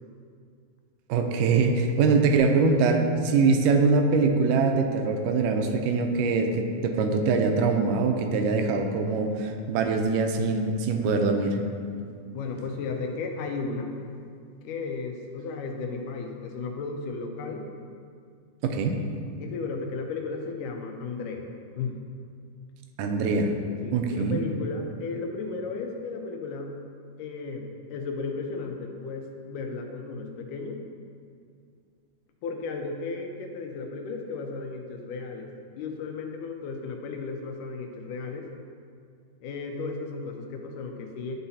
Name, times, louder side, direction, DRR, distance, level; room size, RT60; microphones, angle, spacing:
voice 1, 1.1-11.6 18.6-19.0 23.0-23.5 23.9-24.4, right 4 dB, 85° right, 5 dB, 2.2 m, -23 dB
voice 2, 12.3-13.9 14.6-17.7 19.4-21.5 21.8-22.0 23.8-26.7 27.2-30.8 32.4-35.5 35.8-38.5 39.4-41.3, left 4 dB, 85° left, 3 dB, 2.2 m, -34 dB
12.0 x 4.0 x 2.7 m, 2.3 s
omnidirectional pair, 3.7 m